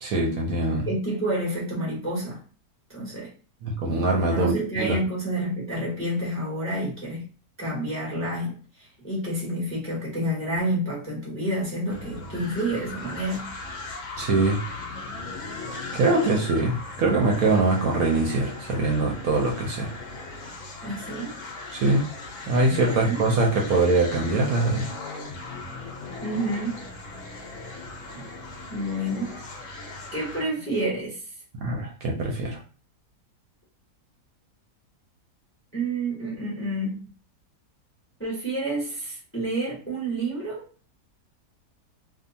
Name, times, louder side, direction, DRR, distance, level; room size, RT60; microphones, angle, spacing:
voice 1, 0.0-0.9 3.6-5.0 14.2-14.6 15.9-19.9 21.7-22.1 22.5-24.9 31.6-32.6, right 2 dB, 65° right, 0 dB, 1.0 m, -23 dB
voice 2, 0.7-2.4 2.9-3.3 4.3-7.2 7.6-13.6 20.8-21.3 22.6-23.3 26.2-26.8 28.1-28.2 28.7-29.4 30.1-31.2 35.7-37.0 38.2-40.6, right 1 dB, 10° left, -5 dB, 0.6 m, -29 dB
sound 1, 11.9-30.5, left 3 dB, 65° left, 0.8 m, -38 dB
2.7 x 2.3 x 2.6 m, 0.39 s
omnidirectional pair, 1.8 m